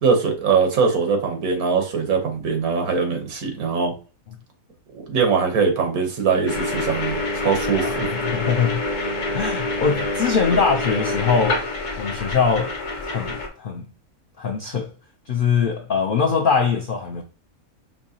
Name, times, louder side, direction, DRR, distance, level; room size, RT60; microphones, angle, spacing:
voice 1, 0.0-3.9 5.1-8.1, right 5 dB, 80° right, 1.5 m, -21 dB
sound 1, 6.5-13.5, left 2 dB, 40° left, 0.8 m, -26 dB
voice 2, 7.8-8.8 9.3-11.6 12.0-12.8 13.0-13.9 14.4-14.9 15.3-17.2, left 6 dB, 90° left, 0.4 m, -22 dB
5.2 x 2.8 x 2.7 m
omnidirectional pair, 1.5 m